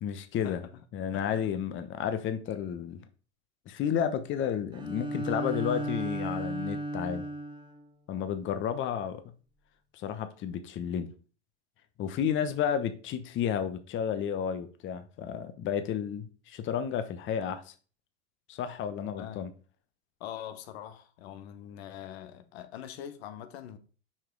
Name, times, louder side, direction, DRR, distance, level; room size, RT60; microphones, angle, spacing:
voice 1, 0.0-0.6 0.9-3.0 3.7-7.3 8.1-9.2 9.9-11.1 12.0-17.7 18.5-19.5, left 8 dB, 35° left, 1.0 m, -32 dB
voice 2, 1.1-1.8 19.2-19.5 20.2-23.8, left 10 dB, 65° left, 1.2 m, -43 dB
Bowed string instrument, 4.7-7.9, right 1 dB, 15° right, 1.1 m, -35 dB
6.0 x 4.9 x 4.6 m
hypercardioid pair, 95°, 34 cm